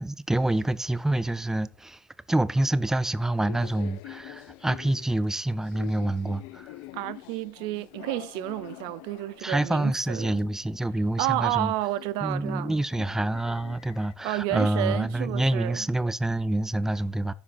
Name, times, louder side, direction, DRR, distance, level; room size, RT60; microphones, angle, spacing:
voice 1, 0.0-6.8 9.4-11.7 12.2-17.3, right 1 dB, 5° right, 0.5 m, -27 dB
sound 1, 2.4-14.1, left 17 dB, 75° left, 0.5 m, -46 dB
voice 2, 6.9-10.4 11.2-12.7 14.2-15.9, right 16 dB, 75° right, 0.6 m, -30 dB
9.7 x 5.9 x 4.1 m
supercardioid pair, 90°, 8 cm